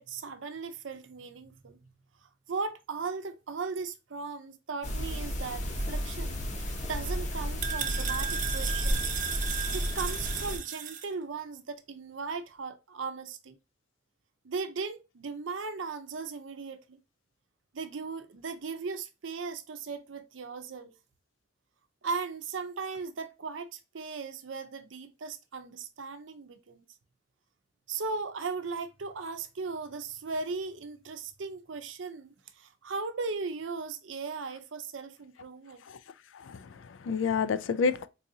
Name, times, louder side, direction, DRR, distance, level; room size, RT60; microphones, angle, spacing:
voice 1, 0.0-1.8 2.5-9.0 9.7-13.6 14.4-17.0 17.7-20.9 22.0-26.8 27.9-35.8, right 4 dB, 85° right, 0.6 m, -37 dB
sound 1, 4.8-10.6, equal, 40° left, 0.7 m, -33 dB
sound 2, 6.5-11.1, right 8 dB, 45° right, 0.4 m, -35 dB
voice 2, 36.3-38.1, left 5 dB, 85° left, 0.4 m, -29 dB
4.0 x 2.8 x 2.6 m
head